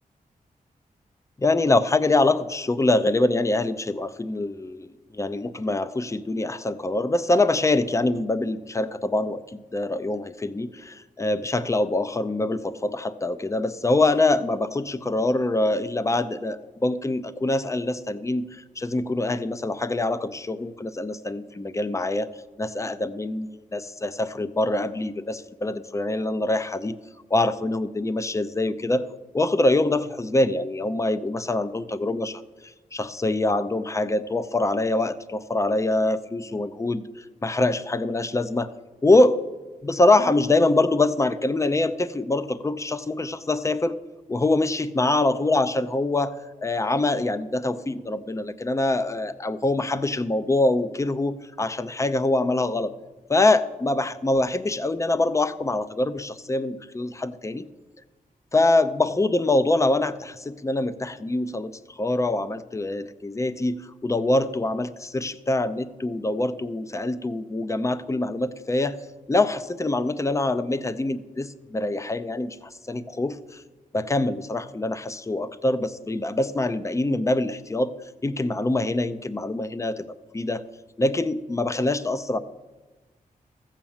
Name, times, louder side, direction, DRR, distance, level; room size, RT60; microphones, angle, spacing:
voice 1, 1.4-22.3 22.6-26.9 27.3-29.0 29.3-32.3 32.9-37.0 37.4-38.7 39.0-39.4 39.8-43.9 44.3-46.3 46.6-52.9 53.3-57.7 58.5-61.7 62.0-69.0 69.3-72.6 72.9-73.6 73.9-77.9 78.2-80.1 80.3-80.6 81.0-82.4, left 2 dB, 20° left, 13 dB, 0.6 m, -24 dB
15.0 x 7.4 x 7.2 m, 1.2 s
wide cardioid pair, 110°, 15 cm